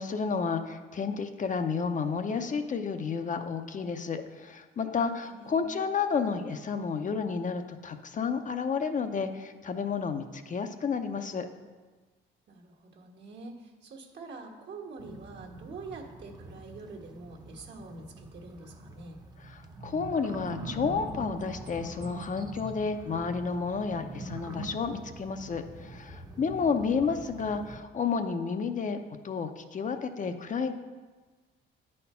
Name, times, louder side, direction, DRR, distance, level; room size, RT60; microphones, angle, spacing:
voice 1, 0.0-11.5 19.4-29.0 29.2-30.7, left 5 dB, 40° left, 7 dB, 0.6 m, -31 dB
voice 2, 5.1-5.7 12.5-19.2 26.4-26.9, right 3 dB, 60° right, 0 dB, 1.4 m, -46 dB
sound 1, 15.0-27.8, right 2 dB, 20° right, 0.8 m, -43 dB
9.0 x 4.3 x 5.5 m, 1.3 s
cardioid pair, 90°, 20 cm